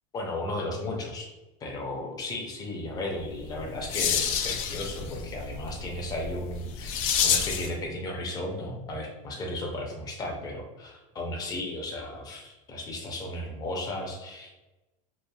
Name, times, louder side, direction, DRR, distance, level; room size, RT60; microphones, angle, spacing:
voice 1, 0.1-1.3 1.6-14.5, left 1 dB, 20° left, 1 dB, 0.5 m, -35 dB
sound 1, 3.3-7.8, left 7 dB, 80° left, 0.4 m, -29 dB
3.0 x 2.3 x 2.3 m, 1.0 s
supercardioid pair, 150°, 18 cm